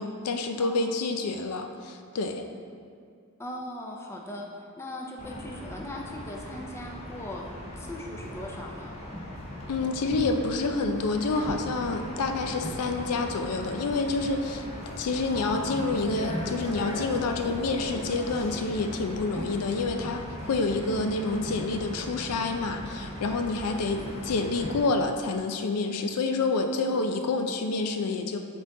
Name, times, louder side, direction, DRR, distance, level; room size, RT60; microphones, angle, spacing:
voice 1, 0.0-2.4 9.7-14.6 15.0-28.4, left 3 dB, 90° left, 6 dB, 0.5 m, -28 dB
voice 2, 3.4-4.5 4.8-8.9 19.3-19.5 23.7-23.9, left 1 dB, 10° left, 0 dB, 0.5 m, -39 dB
sound 1, 5.2-24.8, equal, 30° left, 0.9 m, -38 dB
7.4 x 3.9 x 3.7 m, 2.2 s
head